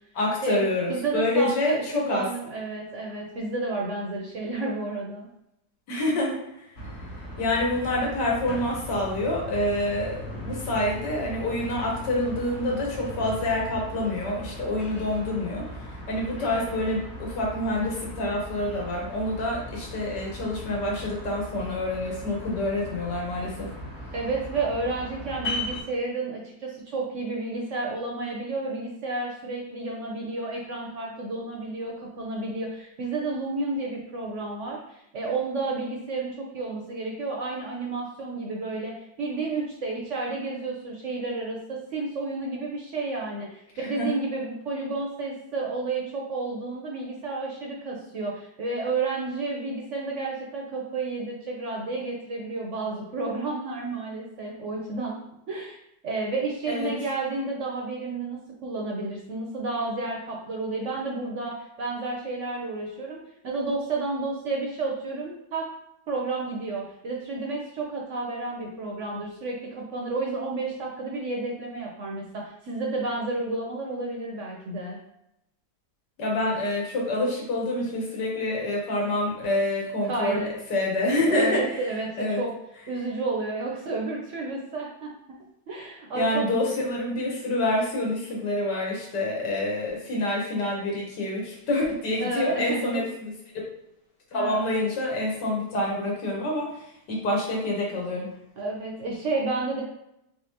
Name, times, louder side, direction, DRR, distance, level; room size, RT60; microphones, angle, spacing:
voice 1, 0.1-2.3 5.9-6.8 7.4-23.7 43.7-44.2 56.7-56.9 76.2-82.4 86.1-93.6 94.3-98.3, left 1 dB, 80° left, -2 dB, 1.7 m, -27 dB
voice 2, 0.9-1.7 2.1-5.3 24.1-55.2 55.5-55.8 56.0-65.7 66.1-75.0 80.1-80.5 81.3-82.5 82.9-85.1 85.7-86.4 92.2-93.1 94.3-94.7 98.6-99.8, right 3 dB, 60° right, -1 dB, 0.8 m, -31 dB
sound 1, 6.7-25.8, left 1 dB, 45° left, 1.2 m, -38 dB
3.8 x 3.6 x 2.8 m, 0.80 s
omnidirectional pair, 1.8 m